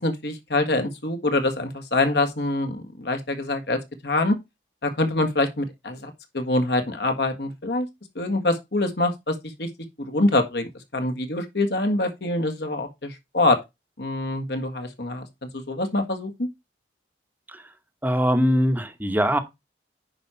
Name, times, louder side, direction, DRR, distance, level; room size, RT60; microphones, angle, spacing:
voice 1, 0.0-4.4 4.8-7.9 8.2-9.7 10.1-13.6 14.0-15.3 15.5-16.5, left 2 dB, 65° left, 1.6 m, -25 dB
voice 2, 18.0-19.4, equal, 10° right, 0.9 m, -21 dB
9.7 x 5.0 x 4.3 m
head